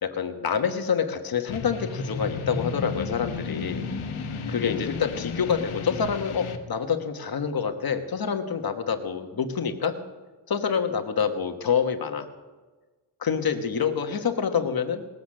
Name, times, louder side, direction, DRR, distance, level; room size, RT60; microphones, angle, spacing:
voice 1, 0.0-3.9 4.5-9.9 10.5-12.3 13.2-15.1, left 6 dB, 45° left, 6 dB, 1.2 m, -27 dB
sound 1, 1.5-6.6, left 4 dB, 75° left, 1.2 m, -33 dB
19.5 x 8.1 x 6.4 m, 1.3 s
wide cardioid pair, 165°, 49 cm